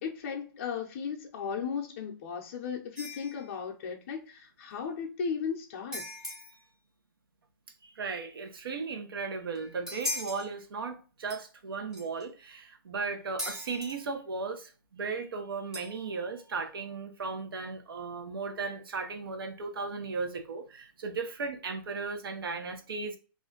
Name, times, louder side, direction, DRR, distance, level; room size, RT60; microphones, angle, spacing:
voice 1, 0.0-6.0, left 6 dB, 40° left, 0.5 m, -36 dB
sound 1, 2.9-3.5 5.9-6.6 9.5-10.5 11.3-11.4 11.9-12.2 13.4-14.0 15.7-16.2, left 1 dB, 5° right, 0.6 m, -38 dB
voice 2, 7.8-23.2, right 4 dB, 80° right, 0.7 m, -36 dB
2.5 x 2.2 x 3.7 m
hypercardioid pair, 160°, 12 cm